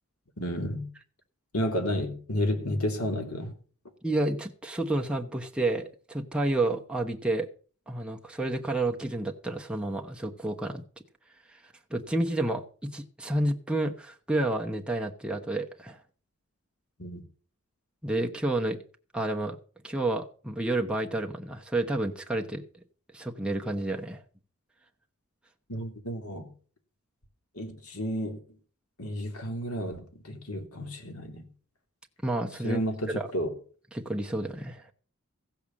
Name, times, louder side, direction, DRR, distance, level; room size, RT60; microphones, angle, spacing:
voice 1, 0.4-0.9 1.5-3.6 17.0-17.2 25.7-26.5 27.5-28.4 29.0-31.5 32.6-33.5, equal, 85° left, 3.2 m, -31 dB
voice 2, 4.0-7.5 7.9-10.8 11.5-11.6 11.9-16.0 18.0-18.8 19.1-19.6 19.8-22.6 23.1-24.2 32.2-32.8 33.1-33.3 33.9-34.9, right 2 dB, 5° right, 1.0 m, -30 dB
15.5 x 6.8 x 7.2 m
head